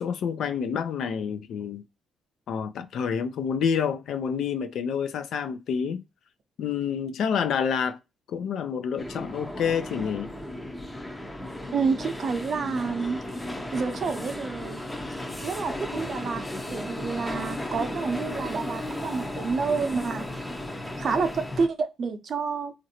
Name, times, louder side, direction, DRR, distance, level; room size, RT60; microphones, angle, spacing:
voice 1, 0.0-1.8 2.5-6.0 6.6-8.0 8.3-10.3, left 7 dB, 70° left, 0.4 m, -28 dB
sound 1, 9.0-21.7, left 1 dB, 5° left, 0.6 m, -35 dB
voice 2, 11.7-13.2 13.7-14.8 15.4-16.4 16.7-20.3 21.0-22.7, right 5 dB, 55° right, 0.6 m, -28 dB
3.1 x 2.5 x 2.8 m
cardioid pair, 90°, 0 cm